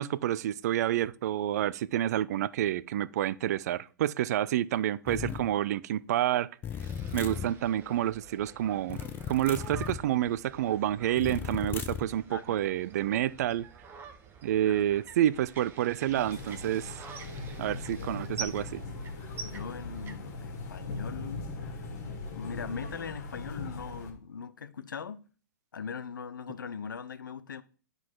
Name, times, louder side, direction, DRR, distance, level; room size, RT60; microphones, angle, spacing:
voice 1, 0.0-6.5 7.1-9.0 9.3-13.7 14.4-16.9 17.6-18.8, right 12 dB, 55° right, 0.4 m, -29 dB
sound 1, 5.1-5.5 6.6-7.5 8.9-10.0 11.2-12.1, left 8 dB, 20° left, 0.5 m, -36 dB
sound 2, 6.8-20.1, right 5 dB, 20° right, 0.9 m, -47 dB
voice 2, 12.3-12.7 14.6-15.0 17.9-19.2 19.4-21.9 22.3-25.3 25.7-27.6, left 6 dB, 75° left, 0.6 m, -41 dB
sound 3, 16.1-24.1, left 3 dB, 50° left, 1.9 m, -40 dB
9.2 x 4.0 x 4.5 m
figure-of-eight pair, 115°, 11 cm